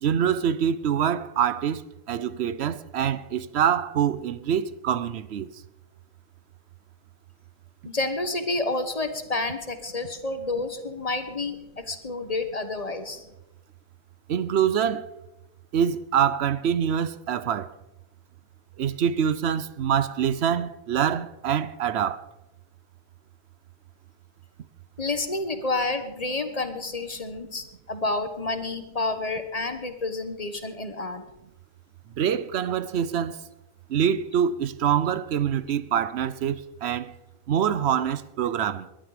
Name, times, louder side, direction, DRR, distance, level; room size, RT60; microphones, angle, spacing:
voice 1, 0.0-1.8 2.1-5.5 14.3-15.0 15.7-17.7 18.8-22.2 32.2-33.4 33.9-37.1 37.5-38.9, right 8 dB, 85° right, 1.0 m, -25 dB
voice 2, 7.8-13.2 25.0-31.2, left 2 dB, 35° left, 1.3 m, -29 dB
20.5 x 11.5 x 5.0 m
omnidirectional pair, 1.1 m